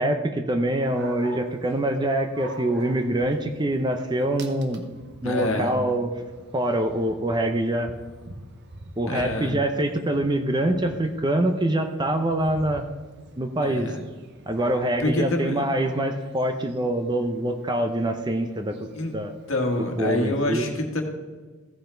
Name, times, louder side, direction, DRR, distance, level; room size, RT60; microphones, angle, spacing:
voice 1, 0.0-4.9 5.2-6.1 6.5-7.9 9.0-12.9 13.4-13.9 14.5-18.9 19.1-19.3 20.0-20.6, right 1 dB, 20° right, 7 dB, 0.6 m, -25 dB
Dog, 0.7-20.3, right 1 dB, 50° right, 1.0 m, -47 dB
voice 2, 5.2-5.7 9.1-9.5 13.6-14.0 15.0-15.6 18.9-19.1 19.5-21.0, left 1 dB, 65° left, 3 dB, 1.5 m, -26 dB
15.0 x 5.6 x 4.4 m, 1.4 s
head